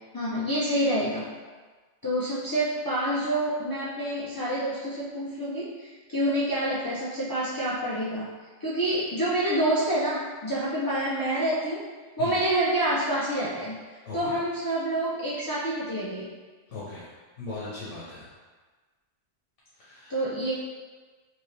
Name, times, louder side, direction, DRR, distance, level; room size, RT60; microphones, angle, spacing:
voice 1, 0.0-1.4 2.0-11.9 12.2-16.3 20.1-20.5, right 1 dB, 35° left, -8 dB, 0.3 m, -28 dB
voice 2, 14.1-14.4 16.7-17.1 17.4-18.3 19.8-20.1, left 3 dB, 90° left, -8 dB, 1.2 m, -38 dB
4.9 x 2.8 x 3.2 m, 1.4 s
omnidirectional pair, 1.2 m